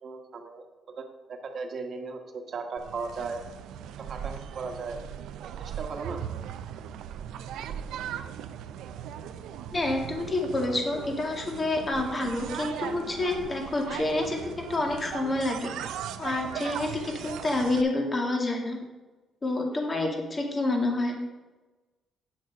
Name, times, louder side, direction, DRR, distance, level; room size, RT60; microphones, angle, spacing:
voice 1, 0.0-3.4 4.0-5.0 5.6-6.2, right 4 dB, 55° right, 5 dB, 1.3 m, -37 dB
sound 1, 2.8-17.8, right 9 dB, 85° right, 0.5 m, -38 dB
voice 2, 9.7-15.7 16.2-18.8 19.4-21.2, left 2 dB, 30° left, 1 dB, 2.1 m, -28 dB
8.8 x 6.4 x 5.0 m, 1.2 s
cardioid pair, 90°, 0 cm